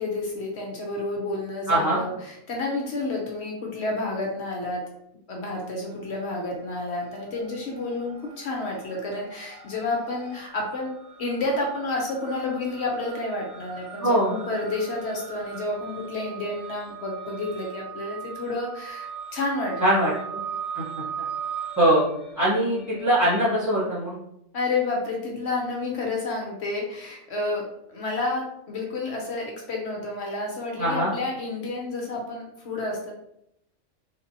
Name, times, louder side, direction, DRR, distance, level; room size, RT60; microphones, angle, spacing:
voice 1, 0.0-4.8 5.3-10.9 11.2-20.1 24.5-33.1, left 2 dB, 60° left, 0 dB, 0.9 m, -30 dB
voice 2, 1.7-2.0 14.0-14.3 19.8-20.1 20.7-20.8 21.2-21.3 21.8-22.0 22.3-24.2 30.8-31.1, right 1 dB, 15° right, -12 dB, 0.9 m, -22 dB
sound 1, 5.9-6.5 6.8-23.4, right 7 dB, 35° right, 0.6 m, -40 dB
3.4 x 2.8 x 2.6 m, 0.78 s
omnidirectional pair, 1.3 m